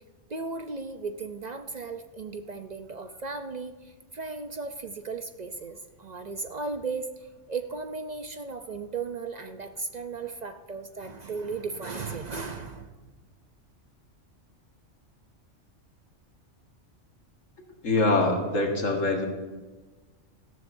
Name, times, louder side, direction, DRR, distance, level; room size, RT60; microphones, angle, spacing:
voice 1, 0.3-13.0, right 4 dB, 50° right, 7 dB, 0.5 m, -36 dB
voice 2, 17.8-19.3, left 2 dB, 90° left, 1 dB, 2.0 m, -24 dB
17.5 x 13.0 x 2.6 m, 1.3 s
omnidirectional pair, 1.3 m